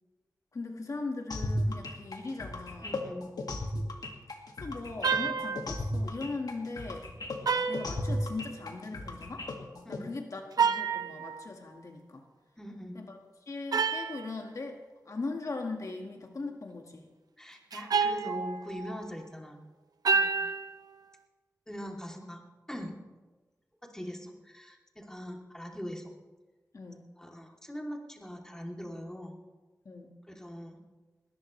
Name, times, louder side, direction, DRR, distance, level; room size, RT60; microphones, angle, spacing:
voice 1, 0.5-3.0 4.6-7.1 7.7-9.5 9.9-12.2 12.9-13.2 13.5-14.8 15.1-17.1 20.1-20.3 26.7-27.1 29.9-30.1, left 3 dB, 55° left, 2 dB, 1.7 m, -39 dB
sound 1, 1.3-10.0, left 1 dB, 80° left, 2.1 m, -35 dB
voice 2, 2.8-3.3 9.8-10.1 12.6-13.0 17.4-19.6 21.7-22.4 22.7-22.9 23.9-26.1 27.2-29.3 30.3-30.8, equal, 10° left, 0 dB, 2.9 m, -41 dB
sound 2, 5.0-5.8 7.5-8.6 10.5-11.5 13.7-14.3 17.7-19.0 20.0-20.8, right 5 dB, 80° right, 0.9 m, -29 dB
21.0 x 19.0 x 3.2 m, 1.2 s
wide cardioid pair, 65°, 6 cm